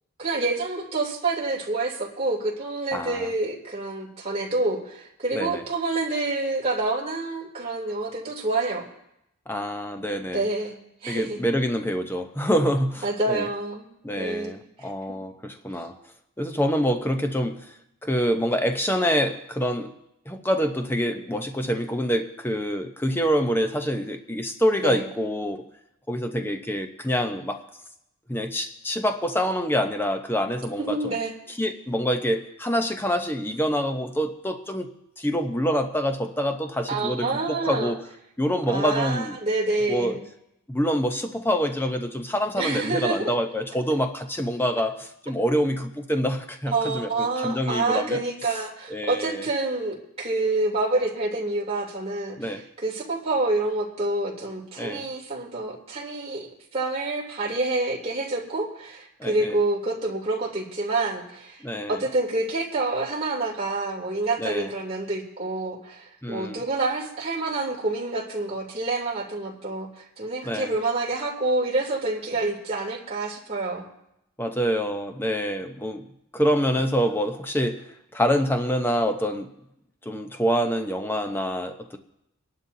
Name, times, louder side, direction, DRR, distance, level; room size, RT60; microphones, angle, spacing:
voice 1, 0.2-8.8 10.3-11.4 13.0-13.9 14.1-14.9 24.8-25.1 30.8-31.3 36.9-37.9 38.7-40.2 42.6-43.3 46.7-56.5 56.7-61.6 61.9-73.9, right 2 dB, 25° right, -4 dB, 3.0 m, -27 dB
voice 2, 2.9-3.3 5.3-5.6 9.5-10.4 11.1-13.5 14.0-15.9 16.4-17.6 18.0-19.9 20.3-25.7 26.1-27.6 28.3-31.1 31.6-38.0 38.4-39.4 39.9-40.2 40.7-48.2 48.9-49.5 52.4-52.6 54.8-55.1 59.2-59.6 61.6-62.0 64.4-64.7 66.2-66.6 70.4-70.7 74.4-76.1 76.3-77.8 78.1-79.5 80.0-82.0, equal, 10° left, 6 dB, 0.8 m, -26 dB
25.5 x 11.5 x 2.8 m, 0.81 s
head